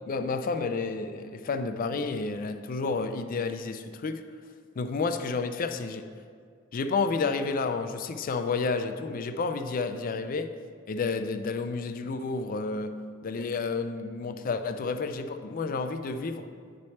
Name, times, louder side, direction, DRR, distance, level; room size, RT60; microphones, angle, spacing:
voice 1, 0.1-4.2 4.8-6.1 6.7-10.5 10.9-12.9 13.2-16.5, left 4 dB, 45° left, 9 dB, 0.4 m, -30 dB
9.5 x 3.2 x 4.2 m, 2.1 s
head